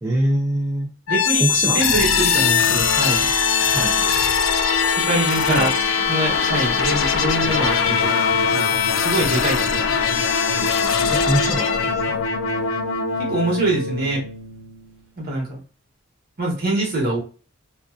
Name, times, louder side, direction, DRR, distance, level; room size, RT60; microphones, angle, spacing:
voice 1, 0.0-0.9 1.3-1.8 3.7-4.0 5.3-5.8 11.1-12.2, right 1 dB, 15° right, -5 dB, 0.5 m, -23 dB
sound 1, 1.1-14.9, left 6 dB, 70° left, 0.4 m, -21 dB
voice 2, 1.1-1.4 1.7-3.3 4.9-5.7 6.1-8.2 8.5-8.7 9.0-9.8 13.2-14.2 15.2-15.6 16.4-17.2, right 2 dB, 50° right, -2 dB, 1.1 m, -24 dB
2.5 x 2.3 x 2.3 m, 0.36 s
head